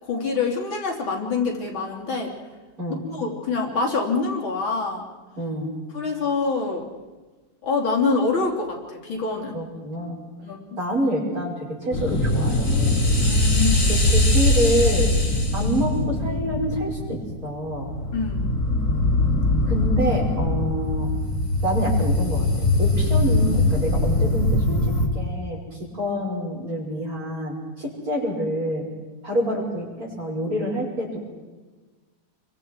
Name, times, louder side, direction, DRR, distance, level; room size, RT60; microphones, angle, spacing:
voice 1, 0.0-2.3 3.1-5.1 5.9-6.9 7.6-9.6 10.4-10.8 13.2-14.0 18.1-18.5, left 4 dB, 70° left, 0 dB, 4.0 m, -25 dB
voice 2, 5.4-5.7 9.5-10.2 10.8-13.0 13.9-15.1 15.5-17.9 19.7-21.1 21.6-22.5 22.8-24.9 25.1-28.9 29.2-31.2, equal, 40° right, -3 dB, 6.2 m, -27 dB
sound 1, 11.9-25.1, left 2 dB, 40° left, 3.2 m, -21 dB
29.0 x 24.0 x 4.7 m, 1.3 s
omnidirectional pair, 2.3 m